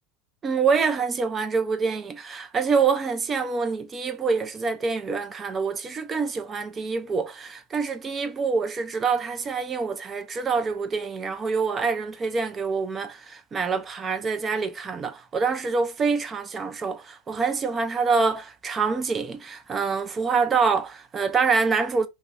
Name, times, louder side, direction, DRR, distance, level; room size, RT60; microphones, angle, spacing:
voice 1, 0.4-22.1, right 5 dB, 25° right, 0.4 m, -26 dB
2.7 x 2.0 x 3.3 m
supercardioid pair, 125°, 0 cm